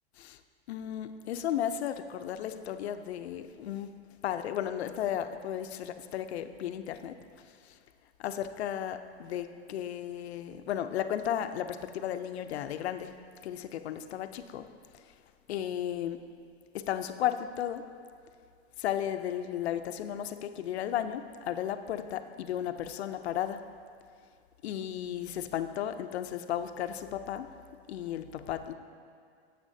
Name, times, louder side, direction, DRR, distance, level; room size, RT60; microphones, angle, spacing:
voice 1, 0.7-3.9 4.2-7.2 7.6-7.7 8.2-13.1 13.4-14.7 15.5-16.2 16.7-17.8 18.8-23.6 24.6-27.5 27.9-28.7, left 10 dB, 80° left, 9 dB, 0.6 m, -34 dB
9.8 x 8.0 x 2.7 m, 2.2 s
hypercardioid pair, 120°, 32 cm